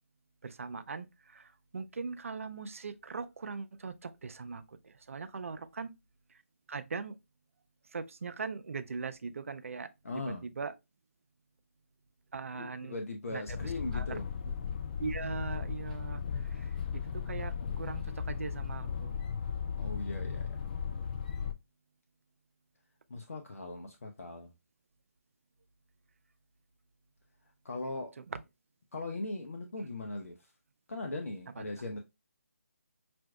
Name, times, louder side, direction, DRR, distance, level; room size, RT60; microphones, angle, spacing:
voice 1, 0.4-5.9 6.7-7.1 7.9-9.9 10.3-10.7 12.3-12.9 13.3-13.6 13.9-14.2 14.5-14.6 15.0-16.2 16.5-19.2 31.6-31.7, right 4 dB, 65° right, 0.5 m, -40 dB
voice 2, 10.0-10.4 12.5-14.3 19.8-20.5 23.1-24.5 27.6-28.1 28.9-30.5 30.9-32.0, left 2 dB, 70° left, 0.7 m, -39 dB
sound 1, 13.5-21.5, left 6 dB, 35° left, 0.4 m, -36 dB
5.7 x 2.6 x 2.2 m
figure-of-eight pair, 155°, 8 cm